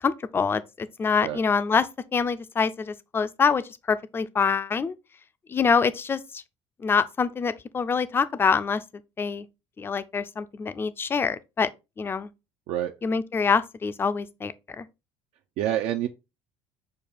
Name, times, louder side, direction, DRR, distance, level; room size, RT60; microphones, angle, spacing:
voice 1, 0.0-4.9 5.5-6.4 6.8-8.8 9.2-9.5 9.8-11.7 12.0-12.3 13.0-14.9, left 5 dB, 20° left, 0.3 m, -25 dB
voice 2, 15.6-16.1, right 12 dB, 75° right, 0.4 m, -27 dB
6.5 x 2.3 x 3.4 m
cardioid pair, 120°, 11 cm